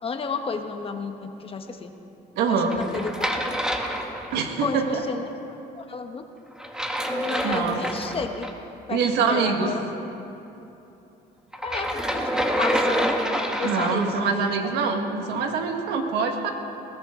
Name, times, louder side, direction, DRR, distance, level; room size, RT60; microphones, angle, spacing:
voice 1, 0.0-1.9 2.5-3.4 4.6-6.2 7.1-8.5 8.9-9.8 11.6-12.3 12.6-13.2 13.6-14.6, left 5 dB, 35° left, 6 dB, 1.2 m, -32 dB
voice 2, 2.4-2.8 4.3-5.0 7.0-7.8 8.9-9.7 13.6-16.5, right 5 dB, 85° right, 3 dB, 1.7 m, -25 dB
sound 1, 2.7-4.7 6.6-8.5 11.5-14.2, equal, 5° right, 1.3 m, -27 dB
20.5 x 17.0 x 3.8 m, 2.9 s
cardioid pair, 110°, 17 cm